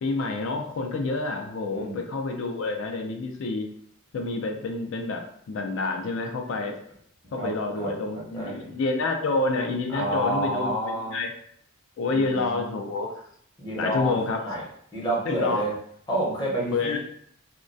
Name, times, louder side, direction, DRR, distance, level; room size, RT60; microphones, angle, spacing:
voice 1, 0.0-3.7 4.1-6.8 7.3-11.3 12.0-13.1 13.8-14.4 15.2-15.7 16.7-17.0, left 3 dB, 65° left, 3 dB, 0.4 m, -28 dB
voice 2, 7.8-8.7 9.9-11.2 12.1-12.8 13.6-14.2 14.4-14.6 14.9-15.7 16.1-17.0, right 1 dB, 20° left, -5 dB, 0.7 m, -29 dB
2.2 x 2.2 x 2.5 m, 0.66 s
head